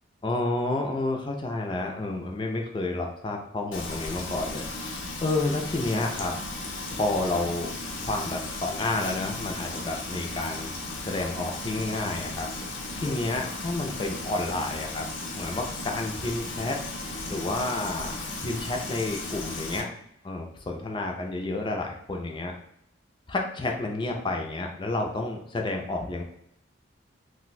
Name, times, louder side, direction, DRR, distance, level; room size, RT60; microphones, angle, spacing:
voice 1, 0.2-4.6 5.2-6.3 6.9-7.7 8.0-10.7 11.0-12.5 13.0-15.1 15.3-16.8 17.3-18.2 18.4-19.9 20.2-22.5 23.3-26.2, left 2 dB, 25° left, 2 dB, 0.4 m, -30 dB
Frying (food), 3.7-19.8, left 2 dB, 70° left, 0.6 m, -35 dB
2.5 x 2.2 x 4.0 m, 0.73 s
head